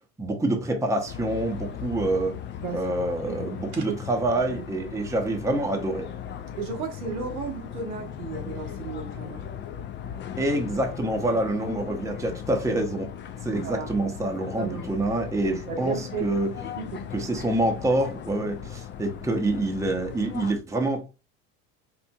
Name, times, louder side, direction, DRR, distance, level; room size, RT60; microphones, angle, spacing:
voice 1, 0.2-2.4 2.7-6.1 10.4-13.1 13.4-16.5 17.1-21.1, right 2 dB, 5° right, 0.7 m, -26 dB
Ambient sound outside cafeteria, 1.1-20.5, left 9 dB, 30° left, 0.4 m, -38 dB
voice 2, 2.6-2.9 3.2-4.0 4.5-4.6 6.6-9.4 13.5-13.9 14.6-14.9 15.4-16.3 16.8-17.3, right 5 dB, 75° right, 1.1 m, -34 dB
4.4 x 2.5 x 2.2 m
hypercardioid pair, 70°, 43 cm